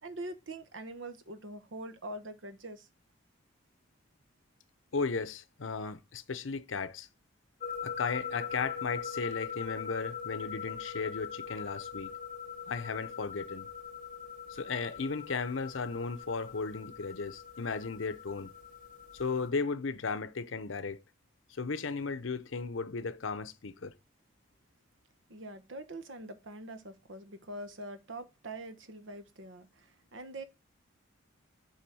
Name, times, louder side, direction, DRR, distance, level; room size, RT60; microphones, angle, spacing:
voice 1, 0.0-2.9 25.3-30.4, right 1 dB, 75° right, 1.1 m, -44 dB
voice 2, 4.9-7.1 7.8-12.1 12.7-13.7 14.5-18.5 19.2-21.0 21.5-23.9, left 4 dB, 85° left, 0.7 m, -35 dB
sound 1, 7.6-19.5, left 7 dB, 40° left, 0.8 m, -42 dB
7.0 x 4.1 x 6.2 m
head